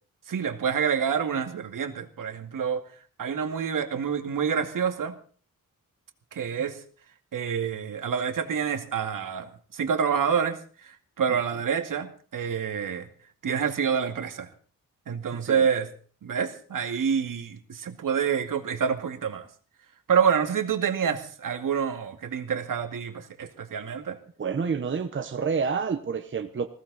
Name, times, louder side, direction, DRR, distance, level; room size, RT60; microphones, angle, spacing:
voice 1, 0.3-2.9 3.2-5.2 6.3-6.8 7.3-10.6 10.8-13.1 13.4-14.5 15.1-15.9 16.2-19.5 20.1-24.2, right 7 dB, 70° right, 6 dB, 2.3 m, -27 dB
voice 2, 24.4-26.7, right 5 dB, 35° right, 7 dB, 1.1 m, -28 dB
20.5 x 16.0 x 4.2 m, 0.42 s
wide cardioid pair, 140°, 34 cm